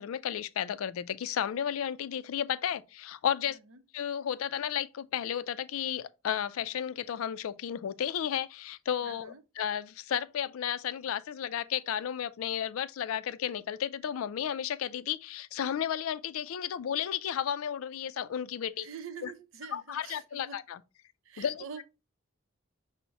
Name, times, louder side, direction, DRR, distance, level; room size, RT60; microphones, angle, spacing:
voice 1, 0.0-3.6 3.9-18.9 19.2-19.3 19.7-20.8 21.4-21.6, left 9 dB, 75° left, 0.3 m, -33 dB
voice 2, 3.5-3.8 9.0-9.4 18.8-20.6 21.2-21.8, right 6 dB, 70° right, 0.6 m, -45 dB
5.6 x 2.1 x 4.0 m
head